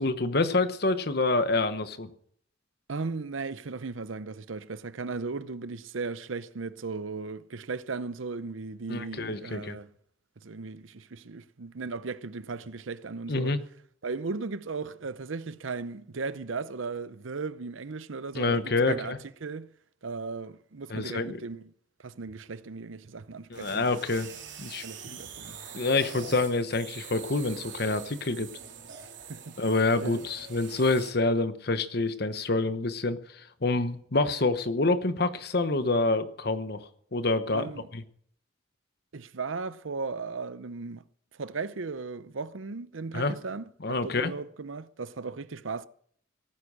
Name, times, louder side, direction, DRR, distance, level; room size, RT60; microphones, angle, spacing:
voice 1, 0.0-2.1 8.9-9.8 13.3-13.6 18.3-19.2 20.9-21.4 23.5-24.3 24.6-25.2 25.7-28.5 29.6-33.2 33.6-38.0 43.1-43.3 43.8-44.3, left 3 dB, 55° left, 1.1 m, -27 dB
voice 2, 2.9-9.9 10.4-13.5 14.0-19.1 19.4-19.7 20.0-21.7 22.0-23.9 24.8-25.6 29.0-29.5 30.0-30.2 37.5-37.9 39.1-41.0 41.4-45.9, right 4 dB, 85° right, 0.7 m, -36 dB
sound 1, 23.1-31.1, right 7 dB, 70° right, 3.1 m, -44 dB
17.5 x 9.9 x 6.3 m
head